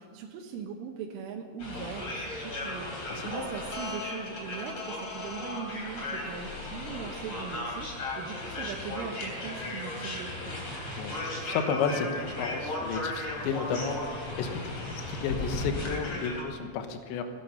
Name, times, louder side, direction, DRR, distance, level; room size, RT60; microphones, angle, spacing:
voice 1, 0.0-7.9 8.2-10.6, right 6 dB, 90° right, 0 dB, 3.7 m, -40 dB
sound 1, 1.6-16.4, left 2 dB, 30° left, 3.5 m, -36 dB
voice 2, 11.0-17.2, left 5 dB, 75° left, 7 dB, 3.3 m, -32 dB
18.0 x 12.0 x 5.7 m, 2.2 s
omnidirectional pair, 5.5 m